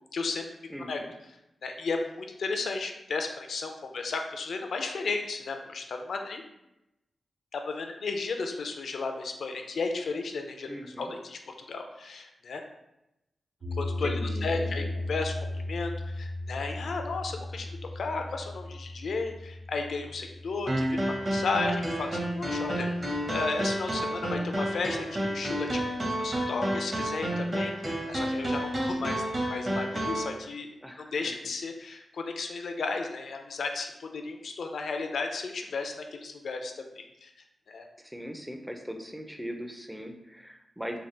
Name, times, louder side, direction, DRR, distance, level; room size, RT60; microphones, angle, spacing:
voice 1, 0.1-0.4 0.9-1.0 1.6-6.4 7.5-12.6 13.8-15.3 15.7-29.2 29.5-30.7 31.0-37.3 37.7-37.9, left 4 dB, 75° left, 4 dB, 0.4 m, -34 dB
voice 2, 0.7-1.1 10.7-11.1 14.0-14.9 30.8-31.2 38.0-41.0, equal, ahead, 4 dB, 0.4 m, -39 dB
sound 1, 13.6-23.8, left 1 dB, 75° right, 0.9 m, -37 dB
sound 2, 20.7-30.3, right 1 dB, 35° right, 0.8 m, -30 dB
3.4 x 2.3 x 3.7 m, 0.89 s
wide cardioid pair, 100°, 0 cm